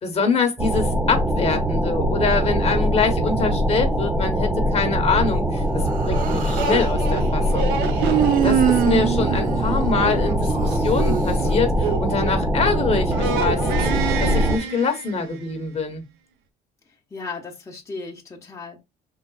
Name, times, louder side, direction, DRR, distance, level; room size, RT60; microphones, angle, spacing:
voice 1, 0.0-7.7 8.4-16.0, left 4 dB, 35° left, 1.3 m, -24 dB
sound 1, 0.6-14.6, equal, 10° right, 0.8 m, -22 dB
Human voice, 5.9-6.9 8.0-10.7, right 11 dB, 55° right, 0.5 m, -23 dB
sound 2, 6.1-12.8 13.1-15.5, right 6 dB, 90° right, 0.8 m, -29 dB
voice 2, 17.1-18.8, left 4 dB, 20° left, 1.2 m, -35 dB
5.7 x 3.9 x 2.4 m
cardioid pair, 110°, 17 cm